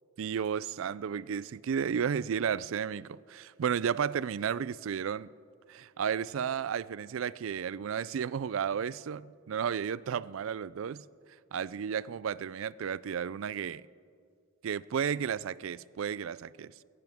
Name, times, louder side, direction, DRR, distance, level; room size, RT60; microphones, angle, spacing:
voice 1, 0.2-5.3 5.7-11.0 11.5-13.8 14.6-16.7, right 7 dB, 75° right, 0.4 m, -33 dB
21.0 x 16.5 x 3.6 m
head